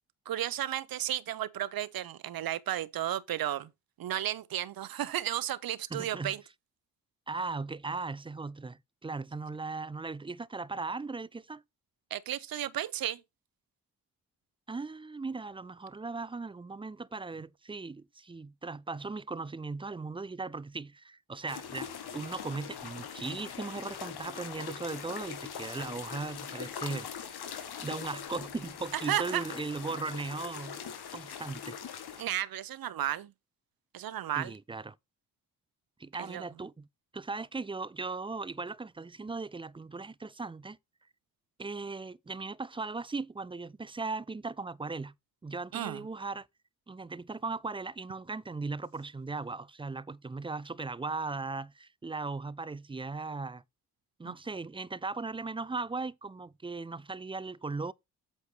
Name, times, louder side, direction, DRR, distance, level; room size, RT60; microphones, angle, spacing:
voice 1, 0.3-3.7 4.0-6.4 12.1-13.2 28.9-29.4 32.2-33.3 33.9-34.5 36.2-36.4 45.7-46.0 54.2-54.3, right 12 dB, 60° right, 0.9 m, -33 dB
voice 2, 5.9-6.3 7.3-11.6 14.7-27.1 27.8-30.8 31.1-31.8 34.4-35.0 36.0-36.9 37.1-40.8 41.6-45.1 45.4-46.5 46.9-53.6 54.2-57.9, right 3 dB, 15° right, 0.4 m, -38 dB
sound 1, 21.5-32.2, left 7 dB, 75° left, 2.0 m, -42 dB
8.3 x 4.5 x 4.8 m
supercardioid pair, 50°, 39 cm